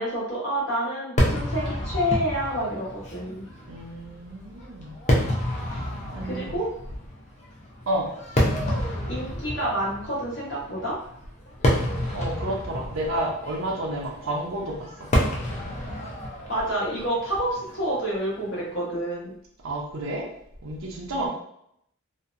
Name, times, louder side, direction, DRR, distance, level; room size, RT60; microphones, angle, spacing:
voice 1, 0.0-3.4 6.2-6.7 9.1-11.0 16.5-19.3 21.2-21.3, equal, 65° left, -6 dB, 1.1 m, -28 dB
Fireworks, 1.2-18.5, equal, 35° left, 0.5 m, -29 dB
voice 2, 3.7-5.0 5.7-6.5 7.9-8.1 8.5-8.7 12.1-14.9 15.1-15.4 19.6-20.2 20.6-21.3, right 1 dB, 80° right, 0 dB, 0.6 m, -31 dB
2.7 x 2.1 x 2.5 m, 0.73 s
head